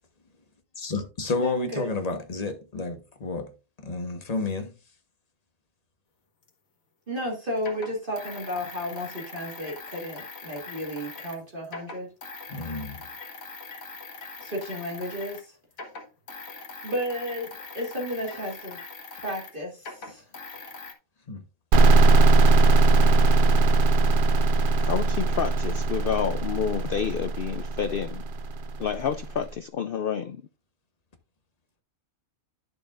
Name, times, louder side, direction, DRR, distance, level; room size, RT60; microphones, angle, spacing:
voice 1, 0.8-3.5 3.8-4.7 12.5-13.0 21.3-21.4, left 3 dB, 30° left, 1.1 m, -30 dB
voice 2, 1.4-1.9 7.1-12.1 14.4-15.6 16.8-18.8 19.1-20.2, equal, 35° right, 2.0 m, -33 dB
sound 1, 6.5-6.6 7.6-11.4 11.6-15.5 15.7-20.9, left 4 dB, 70° left, 1.9 m, -42 dB
sound 2, 21.7-29.3, right 3 dB, 65° right, 0.5 m, -20 dB
voice 3, 24.8-28.2 28.8-30.4, left 7 dB, 85° left, 0.5 m, -29 dB
11.0 x 6.6 x 2.4 m
omnidirectional pair, 1.5 m